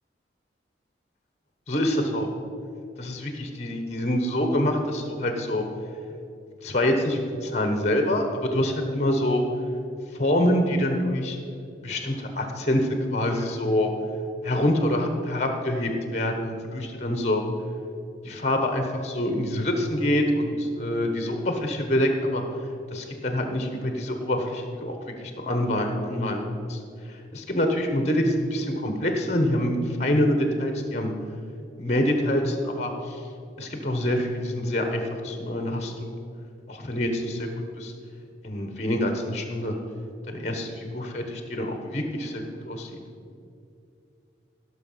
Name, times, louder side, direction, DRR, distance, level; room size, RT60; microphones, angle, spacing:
voice 1, 1.7-2.3 3.0-5.6 6.6-9.4 10.1-11.4 11.8-13.9 14.4-17.4 18.2-22.4 22.9-24.9 25.2-26.4 26.7-26.8 27.3-31.1 31.8-33.2 33.6-36.1 36.7-37.5 37.8-37.9 38.4-39.8 40.3-43.0, left 1 dB, 35° left, 4 dB, 1.2 m, -26 dB
16.5 x 6.4 x 5.7 m, 2.5 s
head